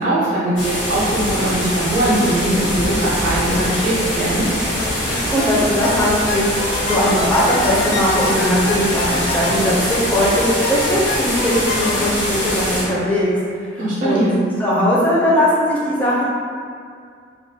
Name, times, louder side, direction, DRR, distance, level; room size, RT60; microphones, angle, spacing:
voice 1, 0.0-4.5 13.8-14.3, right 1 dB, 45° right, -9 dB, 0.5 m, -20 dB
sound 1, 0.6-12.8, equal, 75° left, 0.8 m, -23 dB
sound 2, 4.8-5.5 5.8-10.2 10.6-12.0, left 4 dB, 90° left, 0.3 m, -26 dB
voice 2, 5.0-13.3 13.7-14.3 14.6-16.2, equal, 10° left, -8 dB, 0.4 m, -19 dB
2.3 x 2.1 x 2.7 m, 2.2 s
head